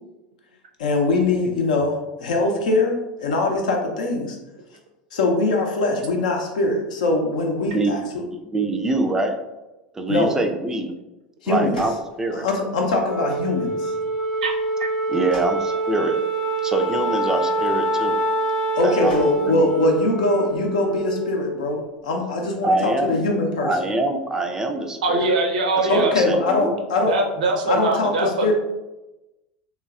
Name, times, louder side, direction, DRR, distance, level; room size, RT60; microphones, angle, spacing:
voice 1, 0.8-4.4 5.1-8.2 10.1-10.4 11.4-11.8 12.3-13.9 18.7-23.7 25.9-27.1 27.7-28.5, left 2 dB, 65° left, 2 dB, 0.6 m, -22 dB
voice 2, 7.6-8.0 8.4-9.3 9.9-10.9 11.5-12.5 15.1-16.2 16.6-18.2 18.8-19.8 22.6-23.2 23.6-25.4 25.8-26.7, right 2 dB, 10° right, 4 dB, 0.4 m, -25 dB
sound 1, 11.5-12.9 15.1-16.6 18.7-19.4, equal, 90° left, 1.0 m, -38 dB
Wind instrument woodwind instrument, 13.1-21.6, right 2 dB, 15° left, 0.9 m, -25 dB
voice 3, 25.0-26.2 27.1-28.5, right 2 dB, 65° right, 3 dB, 0.5 m, -22 dB
3.3 x 3.0 x 2.4 m, 1.0 s
figure-of-eight pair, 80°, 5 cm